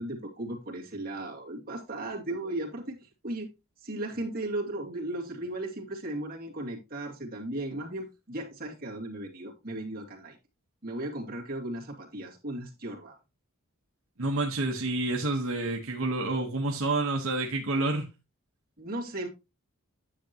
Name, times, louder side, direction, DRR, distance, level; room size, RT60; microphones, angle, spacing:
voice 1, 0.0-3.5 3.8-10.4 10.8-13.2 18.8-19.3, right 1 dB, 40° right, 2.4 m, -36 dB
voice 2, 14.2-18.1, right 2 dB, 70° right, 1.3 m, -28 dB
10.0 x 6.8 x 3.0 m
head